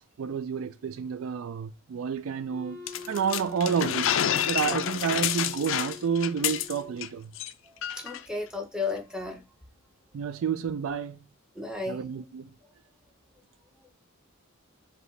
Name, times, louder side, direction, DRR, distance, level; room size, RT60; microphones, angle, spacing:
voice 1, 0.2-2.8 3.1-4.2 4.5-7.3 10.1-11.2 11.9-12.5, right 7 dB, 70° right, 0.3 m, -30 dB
Wind instrument woodwind instrument, 2.5-7.2, left 4 dB, 30° right, 1.5 m, -45 dB
sound 1, 2.9-7.1 7.4-7.5 7.8-8.2, left 10 dB, 60° left, 0.3 m, -29 dB
voice 2, 7.9-9.4 11.5-12.0, left 3 dB, 5° right, 0.8 m, -33 dB
5.0 x 2.8 x 3.2 m
head